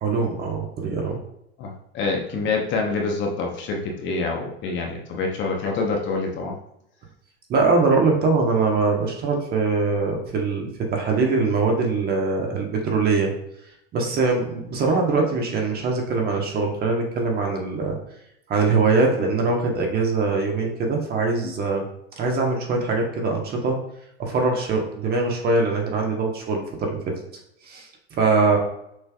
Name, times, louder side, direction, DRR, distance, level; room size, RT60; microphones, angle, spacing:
voice 1, 0.0-1.2 7.5-13.3 13.9-18.0 18.5-21.9 22.2-23.8 24.2-27.0 27.6-28.6, right 3 dB, 30° right, 1 dB, 1.1 m, -22 dB
voice 2, 1.6-6.6 21.4-21.5, left 3 dB, 35° left, 1 dB, 0.9 m, -26 dB
6.3 x 3.3 x 2.3 m, 0.76 s
supercardioid pair, 120°, 33 cm